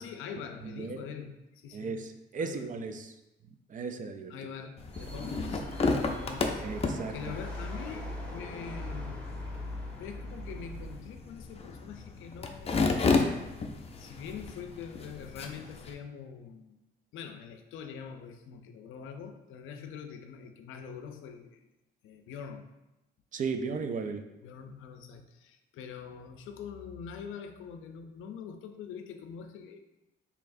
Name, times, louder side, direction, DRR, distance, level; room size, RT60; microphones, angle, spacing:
voice 1, 0.0-2.1 2.4-2.7 4.3-6.7 7.1-9.5 10.0-13.2 14.0-16.8 17.1-21.6 22.0-22.7 23.5-23.7 24.4-29.8, left 7 dB, 85° left, 6 dB, 0.5 m, -44 dB
voice 2, 0.6-1.0 1.7-3.1 3.7-4.3 6.6-7.3 23.3-24.3, right 4 dB, 40° right, 7 dB, 0.4 m, -36 dB
sound 1, 4.8-15.9, left 3 dB, 30° left, 0.5 m, -33 dB
sound 2, 4.9-11.0, left 1 dB, 5° left, 1.4 m, -41 dB
4.6 x 3.4 x 2.6 m, 0.95 s
cardioid pair, 90°, 20 cm